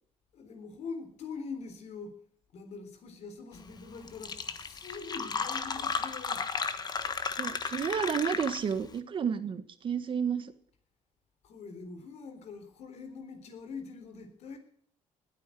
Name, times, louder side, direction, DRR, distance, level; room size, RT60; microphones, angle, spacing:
voice 1, 0.3-2.2 2.5-6.4 11.4-14.6, left 4 dB, 55° left, 3.7 m, -43 dB
Fill (with liquid), 3.8-3.9 4.1-8.9, left 5 dB, 30° left, 1.4 m, -34 dB
voice 2, 7.4-10.5, right 7 dB, 40° right, 1.5 m, -31 dB
20.0 x 9.2 x 7.8 m
cardioid pair, 145°, 13 cm